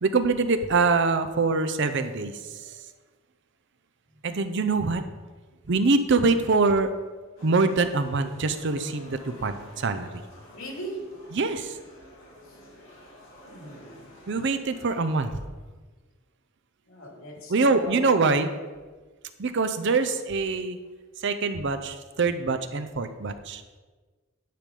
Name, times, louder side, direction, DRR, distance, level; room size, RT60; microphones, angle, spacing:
voice 1, 0.0-2.8 4.2-5.0 5.7-6.9 7.4-10.2 11.3-11.8 14.3-15.4 17.5-18.5 19.4-20.8 21.2-23.6, right 3 dB, 55° right, 10 dB, 0.6 m, -24 dB
sound 1, 7.4-15.3, left 1 dB, 65° left, 2.1 m, -50 dB
voice 2, 10.5-11.0 13.4-14.0 16.9-18.0, right 1 dB, 85° left, -1 dB, 2.7 m, -39 dB
10.5 x 5.1 x 5.4 m, 1.3 s
head